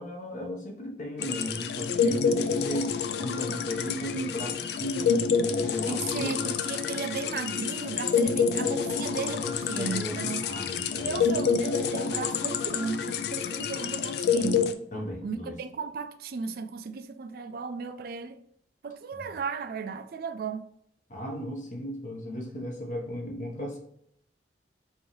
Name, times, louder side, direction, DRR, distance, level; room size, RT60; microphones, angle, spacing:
voice 1, 0.0-6.5 9.3-11.2 14.9-15.5 21.1-23.8, equal, 45° left, 1.0 m, -35 dB
sound 1, 1.2-14.7, left 6 dB, 65° left, 0.3 m, -28 dB
voice 2, 5.9-10.5 10.9-14.7 15.2-18.4 18.8-20.6, right 5 dB, 55° right, 0.4 m, -35 dB
4.6 x 2.7 x 3.0 m
head